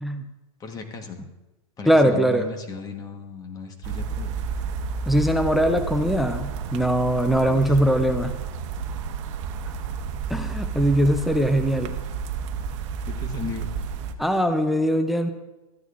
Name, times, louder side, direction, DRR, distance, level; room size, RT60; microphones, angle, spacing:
voice 1, 0.6-1.3 1.8-4.3 7.5-7.7 13.1-13.6, left 4 dB, 20° left, 5 dB, 1.2 m, -36 dB
voice 2, 1.9-2.5 5.1-8.3 10.3-11.9 14.2-15.3, right 1 dB, ahead, 8 dB, 0.5 m, -21 dB
sound 1, 3.8-14.1, right 5 dB, 55° right, 0.9 m, -31 dB
13.5 x 9.0 x 2.5 m, 1.1 s
hypercardioid pair, 125°, 19 cm